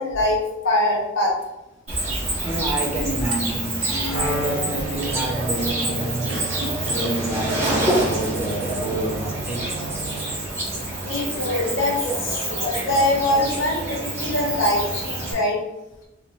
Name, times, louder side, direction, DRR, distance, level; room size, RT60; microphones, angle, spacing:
voice 1, 0.0-1.3 11.0-15.6, left 1 dB, 80° left, -1 dB, 0.9 m, -23 dB
Cricket, 1.9-15.3, right 2 dB, 35° right, 1.4 m, -27 dB
voice 2, 2.4-6.4 6.9-9.8 12.4-12.6, right 1 dB, 5° right, -2 dB, 0.4 m, -28 dB
sound 1, 3.2-3.9 4.4-4.7 5.0-5.1 5.6-5.7 6.2-7.2 7.7-7.8 9.0-9.1 9.8-10.0, right 1 dB, 65° right, 0.8 m, -36 dB
Wind instrument woodwind instrument, 4.1-10.4, right 1 dB, 45° left, 0.6 m, -34 dB
4.2 x 2.1 x 2.9 m, 0.97 s
head